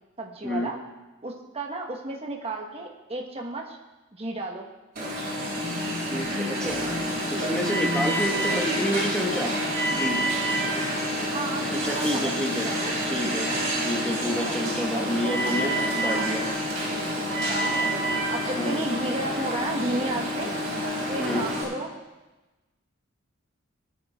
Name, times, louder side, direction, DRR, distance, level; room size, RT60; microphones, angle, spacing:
voice 1, 0.2-0.8 1.2-3.8 4.1-4.7 11.3-12.3 12.6-12.9 14.3-14.5 14.9-15.6 16.0-16.3 17.5-17.9 18.3-20.5 21.1-21.9, right 2 dB, 30° right, 1 dB, 1.4 m, -33 dB
Alarm, 5.0-21.6, equal, 50° right, 4.6 m, -28 dB
voice 2, 6.1-6.8 7.3-9.5 9.9-10.2 11.8-12.7 13.0-13.5 13.8-16.4 18.5-18.8 21.2-21.5, equal, 5° left, 0 dB, 1.6 m, -29 dB
20.5 x 9.6 x 3.6 m, 1.1 s
head